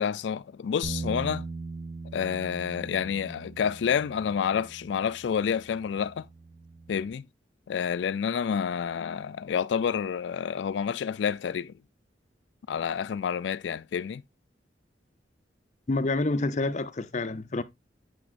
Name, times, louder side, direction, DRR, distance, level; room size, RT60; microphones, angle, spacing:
voice 1, 0.0-1.5 2.1-6.3 6.9-7.2 7.7-11.7 12.7-14.2, left 7 dB, 80° left, 0.3 m, -29 dB
Bass guitar, 0.8-7.1, right 3 dB, 40° right, 1.9 m, -40 dB
voice 2, 15.9-17.6, left 2 dB, 40° left, 0.7 m, -28 dB
9.0 x 6.1 x 2.4 m
head